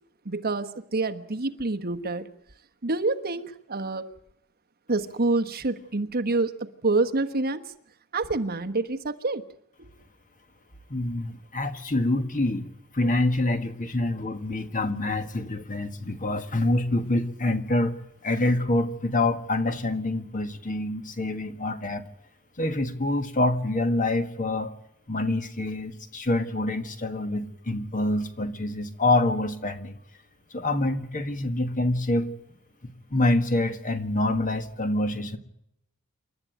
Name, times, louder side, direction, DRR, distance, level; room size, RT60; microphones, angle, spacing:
voice 1, 0.2-2.3 2.8-4.1 4.9-7.6 8.1-9.4, right 3 dB, 45° right, 8 dB, 1.3 m, -27 dB
voice 2, 10.9-12.6 12.9-17.9 18.2-22.0 22.6-24.7 25.1-30.0 30.5-32.3 32.8-35.4, left 2 dB, 40° left, 8 dB, 1.7 m, -26 dB
28.5 x 12.5 x 9.2 m, 0.78 s
head